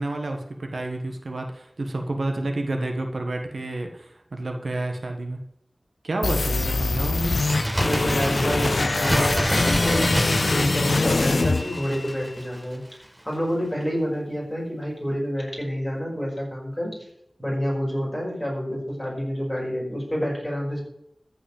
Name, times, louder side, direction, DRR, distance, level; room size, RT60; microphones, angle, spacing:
voice 1, 0.0-5.4 6.0-7.4, right 2 dB, 90° right, 4 dB, 1.3 m, -29 dB
sound 1, 6.2-12.2, left 3 dB, 80° left, 0.3 m, -24 dB
Bird, 7.2-12.8 13.0-13.1, equal, 10° right, 0.8 m, -28 dB
voice 2, 7.8-12.8 13.2-17.0 17.4-20.8, equal, 10° left, -3 dB, 5.3 m, -28 dB
14.0 x 5.2 x 7.1 m, 0.75 s
wide cardioid pair, 60°, 0 cm